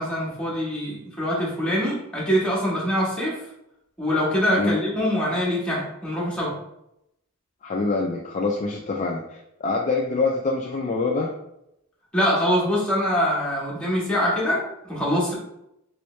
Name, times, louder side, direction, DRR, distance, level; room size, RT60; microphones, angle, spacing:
voice 1, 0.0-3.4 4.0-6.5 12.1-14.6 14.9-15.3, equal, 5° left, -6 dB, 1.0 m, -24 dB
voice 2, 7.6-11.3, left 3 dB, 35° left, -1 dB, 0.3 m, -25 dB
3.1 x 3.0 x 3.1 m, 0.81 s
head